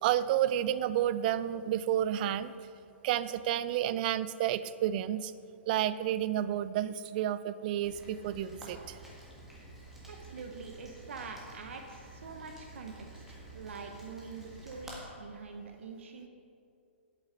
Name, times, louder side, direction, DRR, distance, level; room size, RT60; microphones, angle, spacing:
voice 1, 0.0-2.5 3.0-5.3 5.7-9.0, right 11 dB, 45° right, 15 dB, 0.4 m, -30 dB
Rain, 7.8-15.0, right 1 dB, 5° right, 1.8 m, -50 dB
voice 2, 10.0-16.3, right 4 dB, 75° right, 4 dB, 0.9 m, -45 dB
8.5 x 7.5 x 5.1 m, 2.5 s
hypercardioid pair, 140°, 7 cm